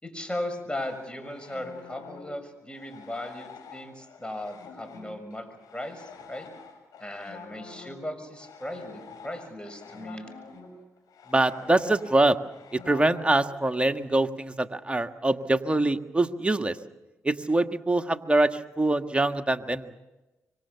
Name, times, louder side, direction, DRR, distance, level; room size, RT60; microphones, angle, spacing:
voice 1, 0.0-6.5 7.0-10.3, left 1 dB, 15° left, 8 dB, 6.7 m, -37 dB
sound 1, 0.7-13.5, left 5 dB, 70° left, 6.4 m, -47 dB
voice 2, 11.3-12.4 12.7-16.8 17.2-19.9, right 2 dB, 15° right, 7 dB, 1.8 m, -24 dB
26.0 x 24.5 x 7.1 m, 1.0 s
supercardioid pair, 45°, 6 cm